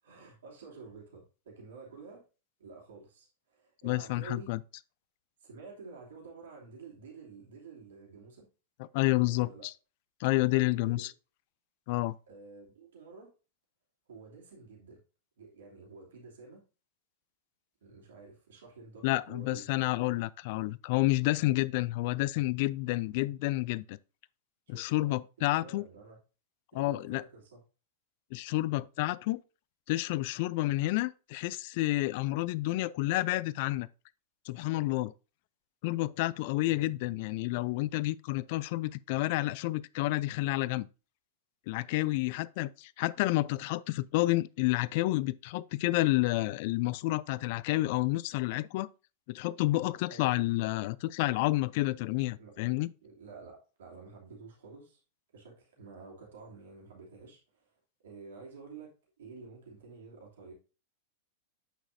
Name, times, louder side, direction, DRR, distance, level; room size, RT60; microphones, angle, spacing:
voice 1, 0.0-2.3 2.6-4.5 5.4-8.5 9.2-9.7 10.4-11.1 12.3-13.3 14.1-15.0 15.4-16.6 17.8-20.1 24.7-26.2 26.7-27.6 36.6-36.9 50.1-50.3 52.3-55.0 55.3-60.5, right 4 dB, 70° right, 2.8 m, -50 dB
voice 2, 3.8-4.6 8.9-9.7 10.2-11.1 11.9-12.2 19.0-24.0 24.7-25.9 26.7-27.2 28.3-29.4 29.9-33.9 34.5-35.1 35.8-40.9 41.7-48.9 49.3-52.9, left 19 dB, 55° left, 0.3 m, -30 dB
8.1 x 6.1 x 2.6 m
hypercardioid pair, 100°, 0 cm